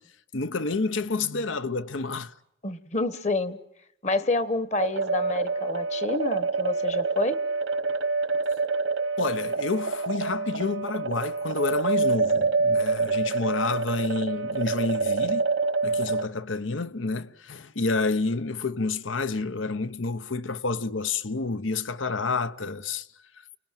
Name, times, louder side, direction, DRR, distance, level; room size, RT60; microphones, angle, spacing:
voice 1, 0.3-2.3 9.2-15.5 15.8-23.1, left 3 dB, 85° left, 1.0 m, -29 dB
voice 2, 2.6-3.6 4.0-7.4, left 2 dB, 35° left, 1.2 m, -28 dB
sound 1, 4.8-16.3, right 4 dB, 90° right, 1.3 m, -27 dB
29.0 x 20.0 x 9.1 m
head